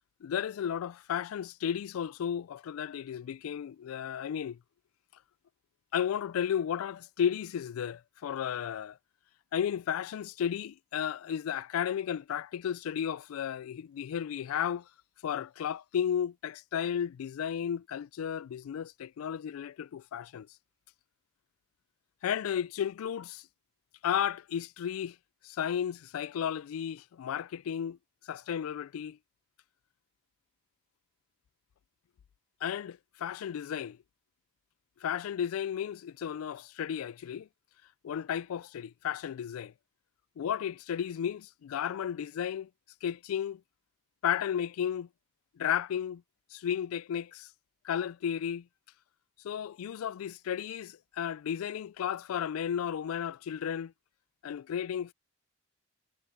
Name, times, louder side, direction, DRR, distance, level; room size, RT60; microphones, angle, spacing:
voice 1, 0.2-4.6 5.9-9.0 9.5-14.9 15.2-20.5 22.2-23.4 24.0-25.2 25.4-28.0 28.3-29.2 32.6-34.0 35.0-37.5 38.0-39.7 40.4-42.7 43.0-43.6 44.2-45.1 45.6-46.2 46.5-47.5 47.8-48.7 49.4-53.9 54.4-55.1, left 9 dB, 85° left, 0.3 m, -33 dB
head